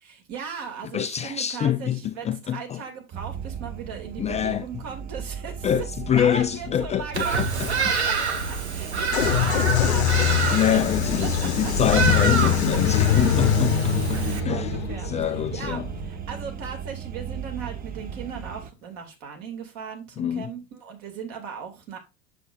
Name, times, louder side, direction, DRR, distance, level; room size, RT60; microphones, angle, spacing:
voice 1, 0.0-5.9 6.1-10.8 11.2-11.7 14.1-22.0, right 6 dB, 55° right, 2.5 m, -38 dB
voice 2, 0.9-2.8 4.2-4.8 5.6-7.7 10.2-14.7 15.0-15.9 20.2-20.5, left 10 dB, 20° left, 0.4 m, -26 dB
sound 1, 3.1-18.7, right 9 dB, 25° right, 0.7 m, -35 dB
Bird vocalization bird call bird song, 7.1-14.4, right 5 dB, 85° right, 1.1 m, -27 dB
sound 2, 9.1-16.7, left 9 dB, 80° left, 1.0 m, -23 dB
7.5 x 6.7 x 2.6 m
hypercardioid pair, 80°, 32 cm